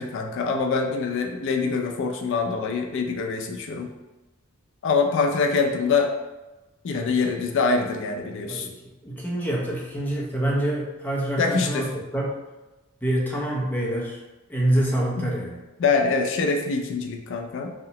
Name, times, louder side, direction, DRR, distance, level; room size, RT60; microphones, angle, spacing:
voice 1, 0.0-3.9 4.8-6.1 6.8-8.7 11.4-11.9 15.2-15.3 15.8-17.7, left 4 dB, 65° left, 3 dB, 0.4 m, -24 dB
voice 2, 9.0-12.4 13.0-14.2 14.5-15.6, right 1 dB, 10° left, -4 dB, 0.5 m, -26 dB
2.8 x 2.1 x 2.8 m, 1.1 s
head